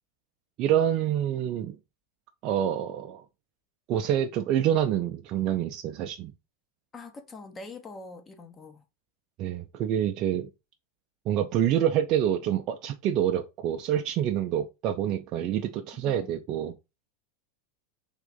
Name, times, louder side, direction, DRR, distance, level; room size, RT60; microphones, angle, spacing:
voice 1, 0.6-1.8 2.4-3.2 3.9-6.3 9.4-10.5 11.3-16.7, right 10 dB, 45° right, 0.4 m, -27 dB
voice 2, 6.9-8.9 15.9-16.4, left 3 dB, 25° left, 0.5 m, -44 dB
3.5 x 2.5 x 3.7 m
figure-of-eight pair, 90°, 0 cm